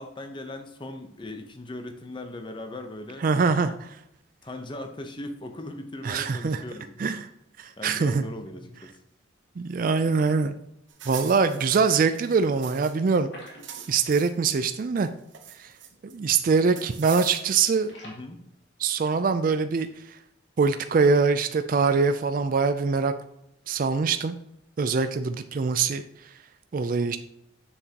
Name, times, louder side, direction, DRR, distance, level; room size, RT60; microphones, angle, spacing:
voice 1, 0.0-3.7 4.4-7.0 7.8-9.0 18.0-18.4, left 1 dB, 25° left, 6 dB, 0.7 m, -39 dB
voice 2, 3.2-4.0 6.0-6.6 7.0-7.3 7.6-8.2 9.6-10.5 11.1-13.3 13.9-15.1 15.6-15.7 16.0-17.9 18.8-19.9 20.6-23.1 23.7-24.3 24.8-26.0 26.7-27.2, right 5 dB, 40° right, 9 dB, 0.3 m, -23 dB
sound 1, 10.9-13.1 13.4-14.6 15.0-16.1 16.8-17.7, right 9 dB, 65° right, 0.8 m, -42 dB
sound 2, 13.3-14.3 14.6-14.7 15.1-15.2 15.8-16.0 16.3-16.7 17.0-18.2, equal, 55° left, 2.4 m, -48 dB
7.2 x 6.8 x 2.8 m, 0.79 s
head